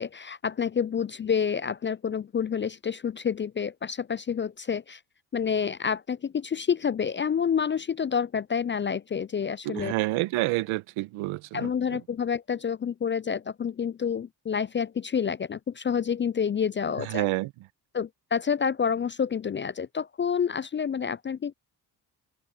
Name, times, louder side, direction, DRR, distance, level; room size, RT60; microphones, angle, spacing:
voice 1, 0.0-5.0 5.3-9.9 11.5-17.3 17.9-21.5, left 7 dB, 25° left, 0.4 m, -28 dB
voice 2, 9.6-12.0 17.0-17.5, right 19 dB, 80° right, 1.4 m, -29 dB
hypercardioid pair, 45°, 48 cm